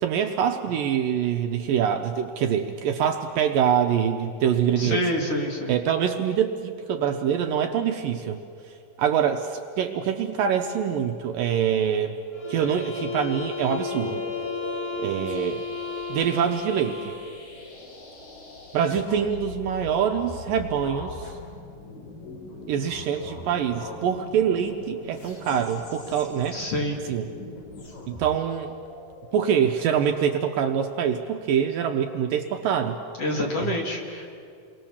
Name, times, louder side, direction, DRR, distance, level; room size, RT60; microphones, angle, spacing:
voice 1, 0.0-5.1 5.7-8.4 9.0-12.2 12.5-14.2 15.0-15.6 16.1-17.2 18.7-21.4 22.7-26.6 27.1-27.3 28.1-28.7 29.3-33.0 33.6-33.7, right 8 dB, 75° right, 5 dB, 2.3 m, -25 dB
voice 2, 4.8-5.7 26.5-27.0 33.2-34.3, left 1 dB, 45° left, 0 dB, 2.4 m, -27 dB
sound 1, 12.3-17.3, left 6 dB, 30° left, 2.2 m, -34 dB
sound 2, 12.4-30.0, left 2 dB, 60° left, 5.3 m, -40 dB
29.0 x 22.5 x 7.2 m, 2.5 s
omnidirectional pair, 4.7 m